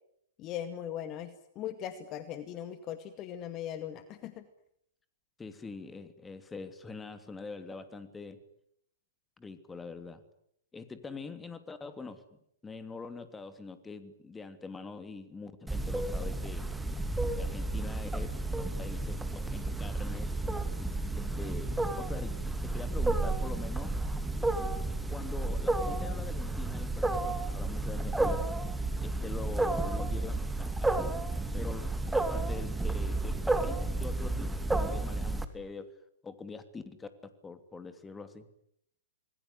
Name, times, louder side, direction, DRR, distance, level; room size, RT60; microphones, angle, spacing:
voice 1, 0.4-4.4, left 10 dB, 30° left, 11 dB, 2.1 m, -39 dB
voice 2, 5.4-8.4 9.4-10.2 10.7-16.7 17.4-18.3 18.5-20.4 21.2-23.9 25.1-28.4 29.0-31.2 31.5-34.5 34.7-35.9 36.2-38.5, left 4 dB, 10° left, 10 dB, 2.9 m, -44 dB
Wild animals, 15.7-35.4, right 2 dB, 5° right, 2.6 m, -32 dB
27.5 x 20.5 x 9.7 m, 0.73 s
figure-of-eight pair, 110°, 0 cm